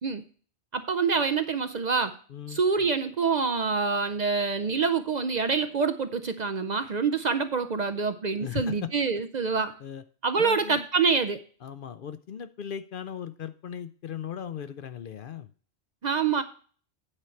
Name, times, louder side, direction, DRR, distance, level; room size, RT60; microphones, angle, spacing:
voice 1, 0.7-2.2 2.5-9.7 10.2-11.4 16.0-16.4, right 5 dB, 50° right, 10 dB, 0.6 m, -26 dB
voice 2, 2.3-2.6 8.4-8.9 9.8-10.0 10.4-10.9 11.6-15.5, left 9 dB, 60° left, 12 dB, 0.7 m, -37 dB
8.8 x 4.6 x 7.0 m, 0.43 s
omnidirectional pair, 1.1 m